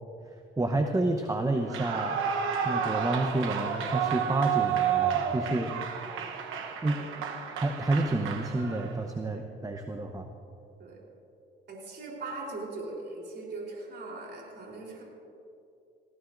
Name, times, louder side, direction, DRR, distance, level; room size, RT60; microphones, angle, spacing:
voice 1, 0.6-2.2 2.6-5.7 6.8-7.0 7.6-10.3, right 2 dB, 15° right, 5 dB, 0.8 m, -29 dB
Clapping / Cheering / Applause, 1.6-9.0, right 8 dB, 90° right, 1.0 m, -31 dB
voice 2, 11.7-15.0, right 3 dB, 60° right, -2 dB, 3.7 m, -40 dB
19.5 x 16.0 x 2.6 m, 2.6 s
cardioid pair, 90°, 20 cm